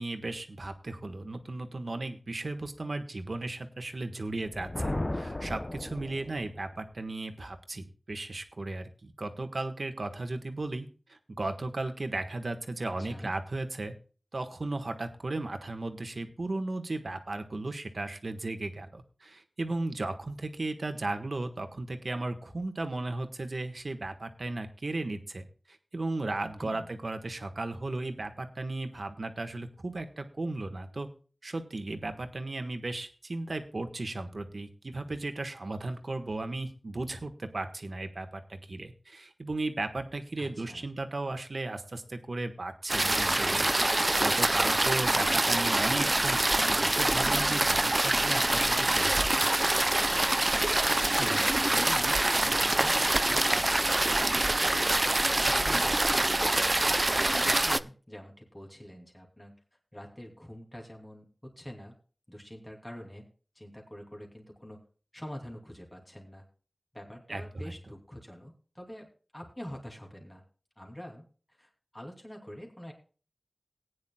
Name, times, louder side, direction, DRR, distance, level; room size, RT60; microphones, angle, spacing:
voice 1, 0.0-13.9 14.3-31.1 31.4-49.5 67.3-67.7, right 2 dB, 75° right, 7 dB, 1.4 m, -35 dB
Thunder, 4.3-6.7, left 1 dB, 40° left, 0.7 m, -35 dB
voice 2, 12.8-13.4 26.6-26.9 40.4-40.9 51.2-55.0 55.4-56.9 57.3-59.5 59.9-61.9 62.3-63.3 63.5-64.8 65.1-66.4 66.9-69.1 69.3-70.4 70.8-71.2 71.6-72.9, equal, 20° left, 1 dB, 2.8 m, -45 dB
sound 1, 42.9-57.8, right 1 dB, 40° right, 0.5 m, -25 dB
19.0 x 9.5 x 2.3 m, 0.37 s
wide cardioid pair, 45°, 0 cm